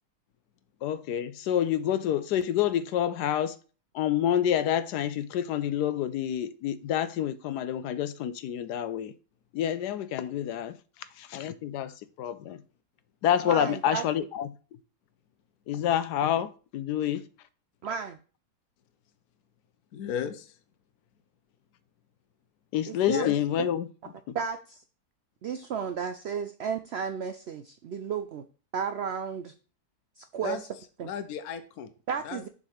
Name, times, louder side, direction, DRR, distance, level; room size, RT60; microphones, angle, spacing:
voice 1, 0.8-3.6 3.9-9.1 9.5-10.7 11.2-11.9 12.2-12.6 13.2-14.5 15.7-17.2 22.7-23.9 24.3-24.4, left 10 dB, 90° left, 1.2 m, -28 dB
voice 2, 13.4-14.0 17.8-18.2 22.9-23.3 24.3-24.8 25.4-28.4 28.7-29.5 30.2-30.7 31.0-31.1 32.1-32.5, right 6 dB, 70° right, 0.6 m, -33 dB
voice 3, 19.9-20.6 23.1-23.3 30.4-30.6 31.0-31.9 32.2-32.4, left 8 dB, 70° left, 1.1 m, -33 dB
7.2 x 3.9 x 6.4 m
omnidirectional pair, 1.7 m